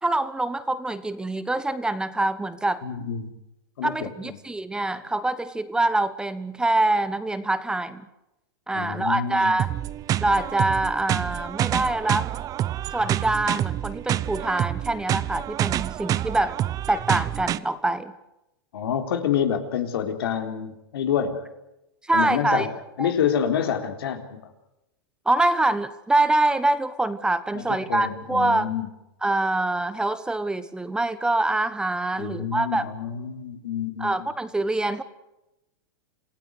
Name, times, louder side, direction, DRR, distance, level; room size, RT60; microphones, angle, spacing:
voice 1, 0.0-2.8 3.8-8.0 8.7-9.7 10.2-12.3 12.9-16.6 16.9-18.1 22.0-22.7 23.0-23.1 25.2-28.7 29.2-32.8 34.0-35.0, right 2 dB, 5° right, 13 dB, 1.2 m, -25 dB
voice 2, 2.8-3.3 3.8-4.3 8.7-9.5 18.7-21.5 22.1-22.7 23.0-24.2 27.5-28.9 32.2-34.3, left 8 dB, 80° left, 6 dB, 3.9 m, -27 dB
sound 1, 9.6-17.6, right 12 dB, 30° right, 0.8 m, -27 dB
27.5 x 17.5 x 8.3 m, 0.90 s
hypercardioid pair, 130°, 12 cm